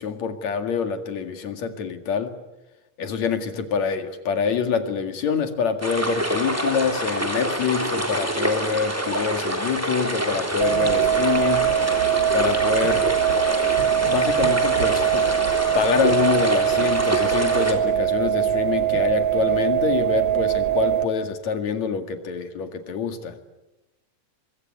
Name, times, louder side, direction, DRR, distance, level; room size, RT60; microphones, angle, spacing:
voice 1, 0.0-2.4 3.0-11.7 12.3-13.1 14.1-15.3 15.7-23.4, left 6 dB, 60° left, 7 dB, 3.2 m, -26 dB
sound 1, 5.8-17.7, equal, 5° right, 2.9 m, -26 dB
sound 2, 10.6-21.0, right 10 dB, 50° right, 1.5 m, -22 dB
24.5 x 23.5 x 9.5 m, 1.0 s
omnidirectional pair, 3.6 m